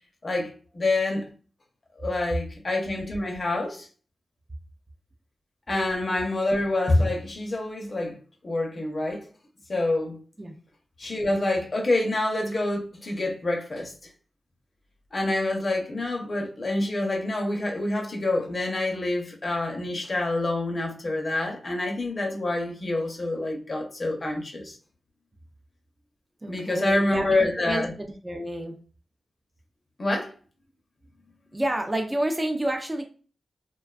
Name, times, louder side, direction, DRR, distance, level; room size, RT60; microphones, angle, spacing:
voice 1, 0.2-1.3 2.0-3.9 5.7-8.2 8.4-9.3 9.7-10.2 11.0-14.1 15.1-24.8 26.5-27.9 30.0-30.3, left 2 dB, 45° left, 0.6 m, -27 dB
voice 2, 26.4-28.8 31.5-33.0, right 1 dB, 20° right, 0.4 m, -29 dB
2.5 x 2.2 x 2.3 m
cardioid pair, 75°, 0 cm